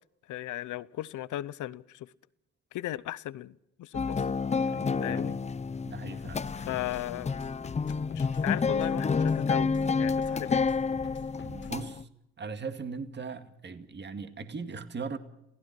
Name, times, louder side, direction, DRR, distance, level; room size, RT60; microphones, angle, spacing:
voice 1, 0.3-2.1 2.7-3.5 3.8-4.2 5.0-5.4 6.5-7.3 8.1-10.7, left 14 dB, 75° left, 20 dB, 0.8 m, -36 dB
sound 1, 3.9-12.0, left 5 dB, 20° left, 0.6 m, -29 dB
voice 2, 4.7-5.2 5.9-6.4 11.4-12.1 12.4-15.2, right 4 dB, 35° right, 8 dB, 2.1 m, -39 dB
sound 2, 6.2-11.9, left 6 dB, 40° left, 1.4 m, -46 dB
28.0 x 16.0 x 6.0 m, 0.87 s
cardioid pair, 90°, 30 cm